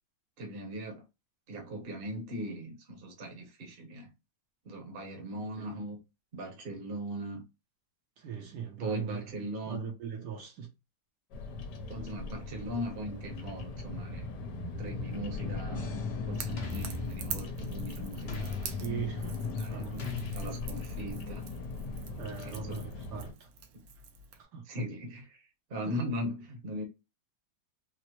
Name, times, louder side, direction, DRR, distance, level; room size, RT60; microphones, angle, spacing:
voice 1, 0.4-1.0 1.5-4.1 4.6-6.0 6.3-7.4 8.8-9.8 11.9-14.3 14.8-15.9 16.3-18.7 19.4-21.4 22.3-22.9 24.6-26.8, equal, 40° right, 0.9 m, -39 dB
voice 2, 8.2-9.2 9.7-10.7 14.5-14.6 18.8-19.4 19.7-20.1 22.2-22.8 23.1-23.5 24.4-24.6 25.8-25.9, right 8 dB, 70° right, 1.2 m, -39 dB
Bird vocalization bird call bird song, 11.3-23.3, left 3 dB, 70° left, 1.3 m, -38 dB
sound 1, 15.7-16.2 16.6-17.9 18.3-19.4 20.0-21.0, left 3 dB, 50° left, 0.8 m, -41 dB
Crackle / Crack, 16.3-24.4, right 8 dB, 90° right, 1.4 m, -46 dB
4.3 x 2.0 x 2.9 m
omnidirectional pair, 2.0 m